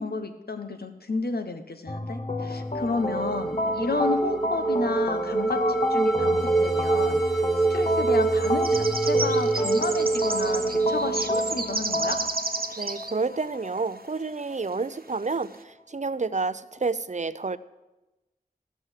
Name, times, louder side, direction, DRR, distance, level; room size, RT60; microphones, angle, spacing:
voice 1, 0.0-7.2 7.7-12.2, left 3 dB, 80° left, 7 dB, 1.2 m, -31 dB
sound 1, 1.9-14.8, left 1 dB, 45° left, 0.9 m, -31 dB
sound 2, 2.8-12.0, right 3 dB, ahead, 1.1 m, -25 dB
sound 3, 6.7-6.8 7.6-7.8 8.1-13.1 13.4-13.5 13.9-14.0 14.8-14.9 15.4-15.5, right 3 dB, 70° right, 1.0 m, -32 dB
voice 2, 12.8-17.6, right 4 dB, 50° right, 15 dB, 0.5 m, -29 dB
15.5 x 6.1 x 8.1 m, 1.0 s
wide cardioid pair, 55°, 16 cm